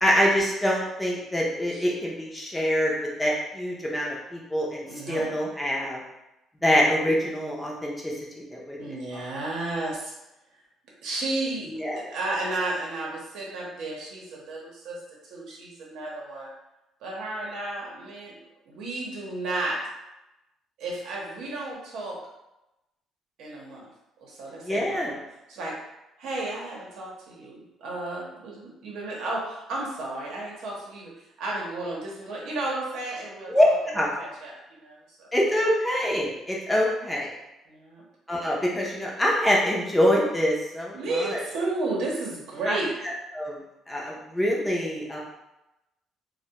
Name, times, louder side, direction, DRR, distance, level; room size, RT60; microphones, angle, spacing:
voice 1, 0.0-2.9 3.2-6.0 6.6-8.8 11.7-12.1 24.6-25.1 33.5-33.7 33.9-34.1 35.3-37.3 38.3-41.4 42.6-42.8 43.0-43.6 43.9-45.2, equal, 10° left, -3 dB, 0.5 m, -25 dB
voice 2, 4.8-5.3 8.8-10.1 11.0-15.0 15.3-16.5 17.0-18.4 18.7-19.8 20.8-22.2 23.4-23.9 24.2-25.2 25.5-25.8 26.2-31.1 31.4-35.3 37.7-38.0 40.9-43.0, right 2 dB, 75° right, -3 dB, 0.7 m, -33 dB
2.2 x 2.1 x 2.8 m, 0.94 s
cardioid pair, 135°, 0 cm